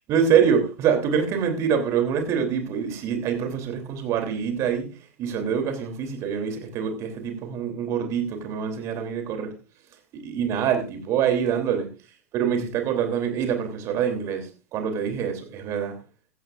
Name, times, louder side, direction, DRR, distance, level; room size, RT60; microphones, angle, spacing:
voice 1, 0.1-9.5 10.1-11.9 12.3-16.0, right 7 dB, 40° right, 3.2 m, -25 dB
15.5 x 14.5 x 2.5 m
figure-of-eight pair, 90°, 8 cm